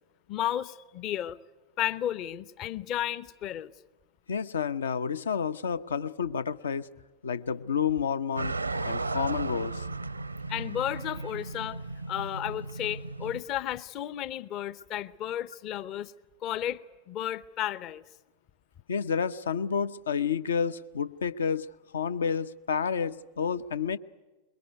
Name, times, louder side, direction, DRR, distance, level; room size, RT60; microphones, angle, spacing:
voice 1, 0.3-1.4 1.8-3.7 10.5-11.8 12.1-16.1 16.4-16.8 17.1-18.0, left 11 dB, 35° left, 18 dB, 0.8 m, -33 dB
voice 2, 4.3-6.9 7.2-8.6 8.8-9.9 18.9-21.7 21.9-24.0, left 6 dB, 70° left, 14 dB, 0.8 m, -30 dB
sound 1, 8.4-13.4, right 3 dB, 85° right, 0.7 m, -35 dB
23.5 x 22.0 x 9.5 m, 1.2 s
figure-of-eight pair, 90°, 0 cm